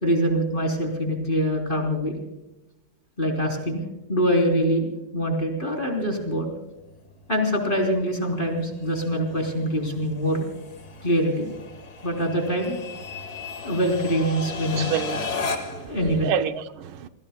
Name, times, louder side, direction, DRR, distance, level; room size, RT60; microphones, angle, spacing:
voice 1, 0.0-2.2 3.2-3.8 4.1-4.9 5.1-6.5 7.3-10.5 11.0-11.5 12.0-12.8 13.6-14.9 15.6-16.3, equal, 25° left, 3.8 m, -24 dB
sound 1, 5.7-15.9, left 4 dB, 50° left, 2.1 m, -36 dB
voice 2, 14.8-15.9 16.2-17.1, right 8 dB, 80° right, 1.6 m, -29 dB
29.0 x 20.0 x 2.3 m
omnidirectional pair, 2.2 m